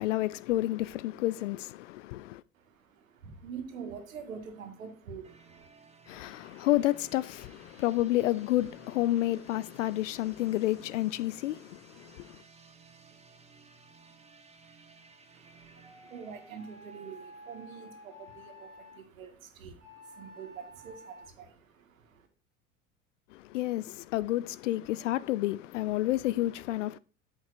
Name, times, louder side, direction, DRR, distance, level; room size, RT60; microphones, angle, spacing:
voice 1, 0.0-2.4 6.1-12.4 23.3-27.0, left 15 dB, 65° left, 0.5 m, -30 dB
voice 2, 2.5-5.7 15.3-22.3, right 6 dB, 70° right, 1.9 m, -46 dB
sound 1, 5.2-19.0, right 4 dB, 15° right, 1.3 m, -58 dB
sound 2, 15.7-19.0 19.8-21.3, equal, 90° right, 3.7 m, -51 dB
8.6 x 8.2 x 2.6 m
figure-of-eight pair, 75°, 41 cm